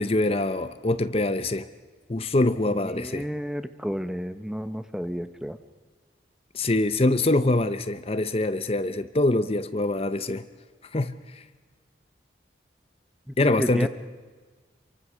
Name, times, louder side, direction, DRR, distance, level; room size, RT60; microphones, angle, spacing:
voice 1, 0.0-1.7 2.1-3.3 6.5-10.4 10.9-11.4 13.4-13.9, left 2 dB, 30° left, 0.7 m, -24 dB
voice 2, 2.9-5.6 13.3-13.9, equal, 5° right, 0.8 m, -31 dB
27.5 x 24.0 x 6.3 m
head